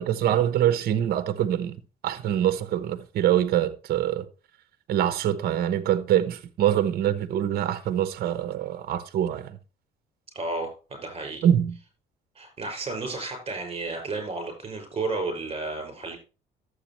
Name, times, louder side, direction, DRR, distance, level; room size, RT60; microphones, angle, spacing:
voice 1, 0.0-1.8 2.0-4.3 4.9-9.6 11.4-11.7, right 10 dB, 65° right, 1.0 m, -24 dB
voice 2, 10.3-11.5 12.3-16.2, right 3 dB, 35° right, 5.9 m, -32 dB
11.5 x 8.1 x 3.1 m
cardioid pair, 110°, 17 cm